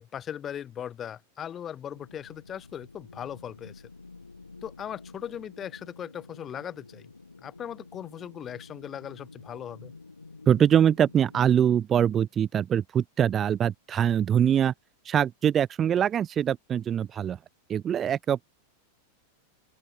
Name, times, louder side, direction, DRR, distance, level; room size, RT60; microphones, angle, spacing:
voice 1, 0.0-3.8 4.6-7.1 7.4-9.9, left 9 dB, 25° left, 1.5 m, -38 dB
sound 1, 1.9-11.6, left 3 dB, 80° left, 4.4 m, -49 dB
voice 2, 10.5-14.7 15.0-17.4 17.7-18.4, right 9 dB, 25° right, 0.4 m, -23 dB
open air
figure-of-eight pair, 90°, 0 cm